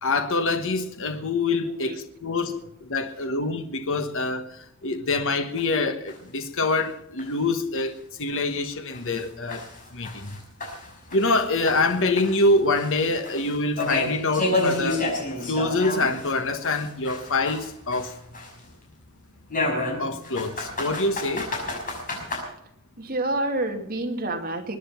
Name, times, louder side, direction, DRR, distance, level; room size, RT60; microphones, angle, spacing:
voice 1, 0.0-7.9 8.2-9.6 9.9-10.3 11.1-15.1 15.4-18.2 20.0-21.5, left 2 dB, 65° left, 1.3 m, -25 dB
voice 2, 1.6-2.0 23.0-24.8, right 2 dB, 45° right, 2.4 m, -28 dB
sound 1, 5.6-5.7 6.1-6.2 6.6-6.7 7.2-7.3 7.8-7.9 8.3-8.4 8.9-11.4 11.7-16.3 16.6-18.7 19.5-22.4, left 2 dB, 40° left, 5.8 m, -30 dB
21.5 x 10.0 x 5.8 m
head